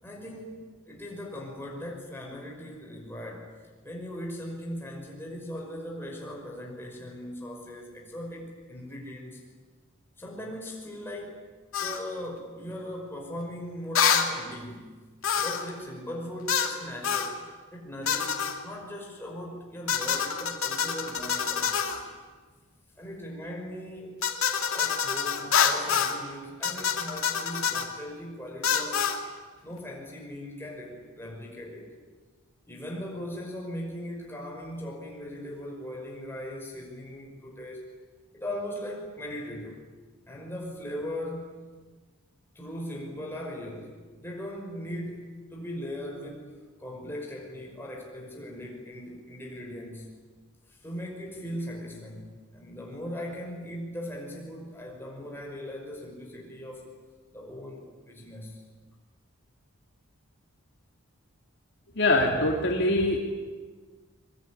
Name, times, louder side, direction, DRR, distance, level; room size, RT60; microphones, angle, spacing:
voice 1, 0.0-3.5 3.8-9.5 10.2-11.4 11.8-14.9 15.4-17.4 17.7-22.2 23.0-24.2 24.7-29.1 29.6-31.9 32.7-37.9 38.3-39.8 40.3-41.6 42.6-46.5 46.8-50.1 50.7-56.9 57.3-58.6, equal, 10° left, -1 dB, 5.7 m, -39 dB
sound 1, 11.7-12.0 14.0-14.3 15.2-15.7 16.5-16.8 17.0-17.3 18.1-18.6 19.9-22.0 24.2-26.2 26.6-27.9 28.6-29.2, left 7 dB, 70° left, 2.5 m, -26 dB
voice 2, 61.9-63.2, left 2 dB, 55° left, 0 dB, 3.2 m, -23 dB
23.0 x 23.0 x 9.9 m, 1.4 s
head